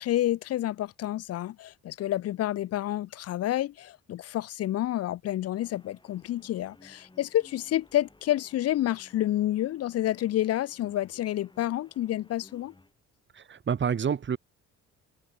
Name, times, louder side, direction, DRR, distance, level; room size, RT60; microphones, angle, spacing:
voice 1, 0.0-12.7, left 13 dB, 55° left, 0.5 m, -29 dB
sound 1, 5.5-12.9, left 2 dB, 15° left, 5.4 m, -58 dB
voice 2, 13.3-14.4, right 7 dB, 40° right, 1.4 m, -28 dB
cardioid pair, 90°, 30 cm